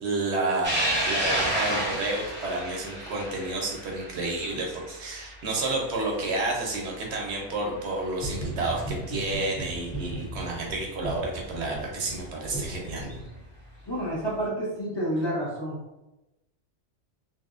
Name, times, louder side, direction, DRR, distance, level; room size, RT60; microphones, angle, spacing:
voice 1, 0.0-0.8 1.1-13.1, right 2 dB, 70° right, 0 dB, 0.8 m, -30 dB
sound 1, 0.6-7.3 7.8-7.9 9.1-9.2 11.4-11.5 12.8-13.1, right 1 dB, 10° right, 0.6 m, -31 dB
sound 2, 8.2-13.7, right 1 dB, 65° left, 1.1 m, -37 dB
voice 2, 13.9-15.8, right 1 dB, 25° left, -8 dB, 0.6 m, -29 dB
2.8 x 2.7 x 2.3 m, 0.96 s
omnidirectional pair, 1.3 m